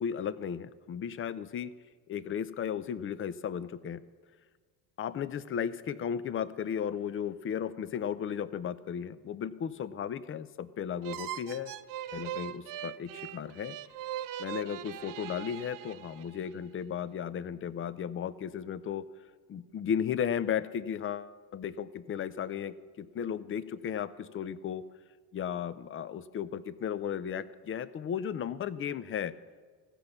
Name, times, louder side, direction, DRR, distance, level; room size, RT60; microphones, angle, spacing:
voice 1, 0.0-1.7 2.1-4.0 5.0-11.8 12.1-13.8 14.4-19.1 19.5-24.8 25.3-29.3, left 8 dB, 30° left, 15 dB, 0.5 m, -35 dB
sound 1, 11.0-16.5, right 12 dB, 45° right, 0.5 m, -41 dB
15.0 x 5.3 x 7.1 m, 1.5 s
supercardioid pair, 85°, 46 cm